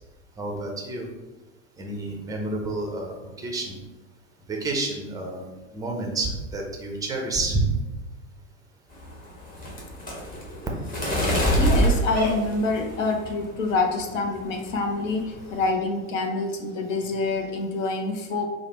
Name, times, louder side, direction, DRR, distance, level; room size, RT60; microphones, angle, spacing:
voice 1, 0.4-1.1 1.8-3.8 4.5-7.6, right 2 dB, 10° right, 1 dB, 0.5 m, -29 dB
sound 1, 8.9-13.3 13.8-14.2 14.5-14.8 15.0-15.7, right 1 dB, 20° left, 1.1 m, -25 dB
voice 2, 11.6-18.5, left 3 dB, 65° left, 4 dB, 0.7 m, -26 dB
4.7 x 2.1 x 3.1 m, 1.1 s
figure-of-eight pair, 90°, 41 cm